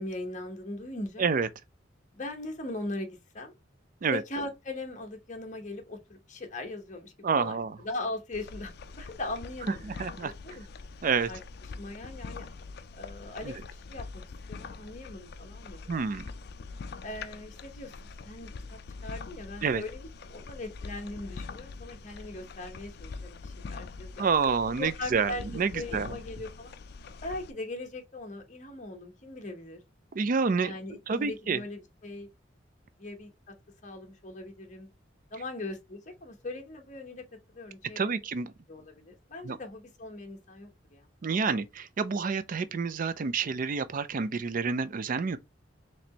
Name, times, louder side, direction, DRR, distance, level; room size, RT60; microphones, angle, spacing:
voice 1, 0.0-1.3 2.1-3.5 4.1-10.6 11.3-11.4 11.8-12.5 13.0-14.2 14.5-15.9 17.0-17.9 18.2-26.7 27.2-29.8 30.6-32.3 33.0-33.3 33.8-34.9 35.3-37.2 37.5-38.2 38.7-41.1, left 2 dB, 40° left, 1.0 m, -40 dB
voice 2, 7.2-7.7 9.8-10.3 11.0-11.3 13.4-13.5 15.9-16.2 19.6-19.8 24.2-26.2 30.1-30.7 31.1-31.6 38.0-38.5 39.4-39.6 41.2-45.4, right 5 dB, 45° right, 0.4 m, -28 dB
sound 1, 8.3-27.5, left 4 dB, 55° left, 0.4 m, -44 dB
4.3 x 3.2 x 2.9 m
head